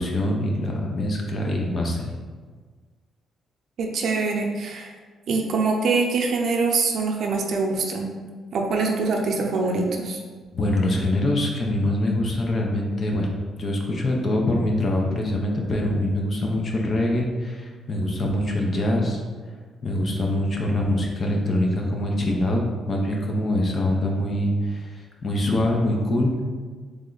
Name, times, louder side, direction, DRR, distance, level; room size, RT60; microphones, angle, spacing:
voice 1, 0.0-2.2 10.5-13.3 13.6-19.2 19.8-26.3, left 1 dB, 40° left, 0 dB, 0.8 m, -24 dB
voice 2, 3.8-4.9 5.3-8.1 8.5-10.2, right 4 dB, 65° right, 1 dB, 0.7 m, -24 dB
3.5 x 3.3 x 3.9 m, 1.5 s
cardioid pair, 90°, 0 cm